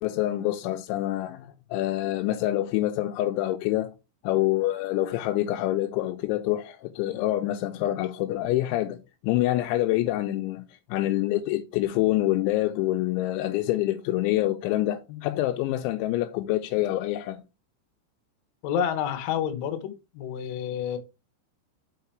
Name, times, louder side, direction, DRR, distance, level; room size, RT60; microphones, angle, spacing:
voice 1, 0.0-3.9 4.2-10.6 10.9-17.4, left 15 dB, 90° left, 3.0 m, -26 dB
voice 2, 18.6-21.0, left 8 dB, 70° left, 2.2 m, -29 dB
5.7 x 5.3 x 4.5 m
omnidirectional pair, 5.3 m